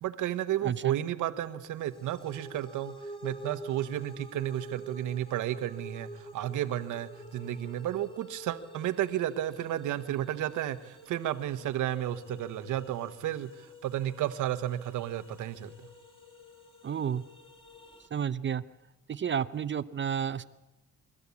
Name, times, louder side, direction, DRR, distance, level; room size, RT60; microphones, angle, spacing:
voice 1, 0.0-2.9 3.2-15.7, right 12 dB, 85° right, 10 dB, 1.4 m, -32 dB
voice 2, 0.6-1.0 16.8-17.2 18.1-18.6 19.1-20.4, right 8 dB, 40° right, 13 dB, 0.7 m, -31 dB
sound 1, 1.8-18.1, right 1 dB, 15° left, 2.8 m, -48 dB
25.5 x 13.5 x 8.5 m, 1.1 s
cardioid pair, 90°, 30 cm